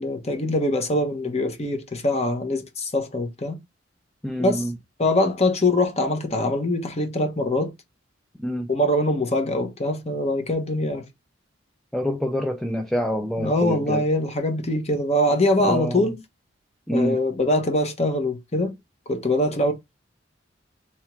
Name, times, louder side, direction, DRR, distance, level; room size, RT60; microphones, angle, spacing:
voice 1, 0.0-3.6 4.4-4.6 5.0-7.7 8.7-11.1 13.4-16.2 16.9-18.8 19.1-19.7, left 1 dB, 35° left, 1.0 m, -23 dB
voice 2, 4.2-4.7 8.4-8.7 11.9-14.0 15.6-16.1 16.9-17.2, equal, ahead, 0.5 m, -26 dB
3.4 x 2.9 x 4.6 m
head